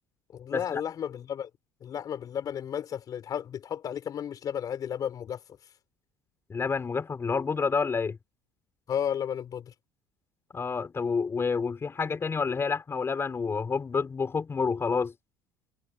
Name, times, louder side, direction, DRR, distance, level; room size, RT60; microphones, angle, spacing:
voice 1, 0.3-1.5 1.8-5.7 8.9-9.7, left 9 dB, 45° left, 4.1 m, -33 dB
voice 2, 6.5-8.2 10.5-15.1, left 5 dB, 30° left, 5.2 m, -29 dB
hypercardioid pair, 75°, 9 cm